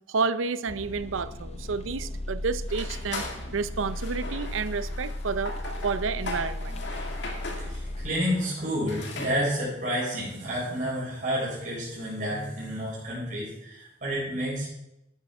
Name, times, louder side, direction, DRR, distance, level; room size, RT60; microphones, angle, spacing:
voice 1, 0.0-5.5 5.8-6.8, right 4 dB, 80° right, 15 dB, 0.6 m, -30 dB
sound 1, 0.7-8.1, left 1 dB, 35° left, 0.7 m, -36 dB
sound 2, 2.7-9.3, left 2 dB, 65° left, 2.1 m, -38 dB
voice 2, 7.6-14.7, equal, 40° right, -6 dB, 4.6 m, -30 dB
11.5 x 9.2 x 4.3 m, 0.89 s
head